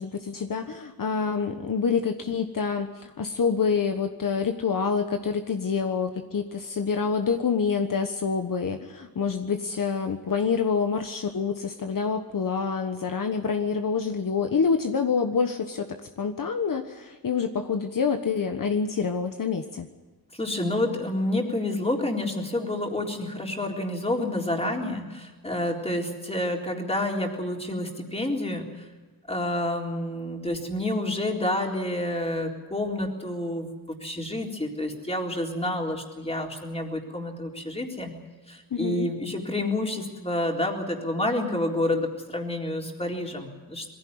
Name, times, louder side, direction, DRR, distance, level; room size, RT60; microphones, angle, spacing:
voice 1, 0.0-19.9 38.7-39.1, left 5 dB, 60° left, 6 dB, 1.4 m, -27 dB
voice 2, 20.3-28.7 29.3-38.1 38.5-43.9, left 1 dB, 15° left, 1 dB, 3.9 m, -29 dB
22.0 x 16.0 x 9.6 m, 1.2 s
wide cardioid pair, 100°, 36 cm